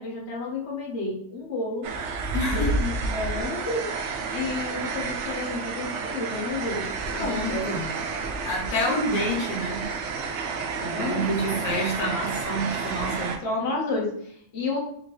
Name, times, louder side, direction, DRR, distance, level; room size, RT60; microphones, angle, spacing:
voice 1, 0.0-1.9 2.4-6.9 7.3-7.7 10.9-11.3 13.4-14.8, left 2 dB, 50° left, -2 dB, 1.3 m, -31 dB
sound 1, 1.8-13.4, right 4 dB, 60° right, 0.8 m, -30 dB
voice 2, 2.3-2.7 7.2-7.8 8.4-9.9 10.8-13.4, equal, 80° left, -2 dB, 1.4 m, -28 dB
4.3 x 2.8 x 3.2 m, 0.66 s
omnidirectional pair, 1.6 m